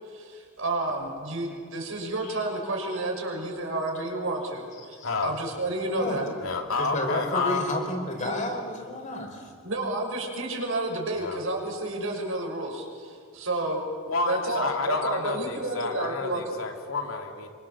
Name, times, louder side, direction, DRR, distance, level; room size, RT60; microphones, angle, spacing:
voice 1, 0.1-6.3 8.2-8.3 9.6-13.9 14.3-16.6, right 2 dB, 75° right, 0 dB, 6.3 m, -30 dB
voice 2, 5.0-5.3 6.4-7.7 11.1-11.4 14.1-17.5, left 4 dB, 85° left, 3 dB, 3.1 m, -30 dB
voice 3, 6.8-9.5, left 1 dB, 35° left, 2 dB, 4.9 m, -31 dB
26.5 x 25.0 x 7.6 m, 2.1 s
head